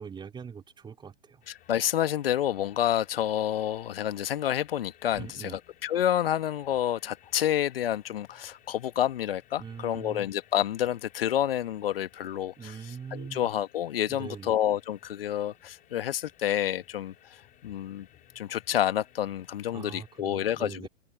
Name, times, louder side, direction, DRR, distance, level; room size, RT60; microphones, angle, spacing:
voice 1, 0.0-1.4 5.1-5.6 9.6-10.3 12.6-13.5 14.1-14.5 19.7-20.9, right 6 dB, 15° right, 4.8 m, -42 dB
sound 1, 1.4-20.2, left 13 dB, 25° left, 5.1 m, -59 dB
voice 2, 1.5-5.5 5.8-12.7 13.1-18.1 18.3-20.9, left 11 dB, 55° left, 1.6 m, -29 dB
open air
figure-of-eight pair, 115°, 34 cm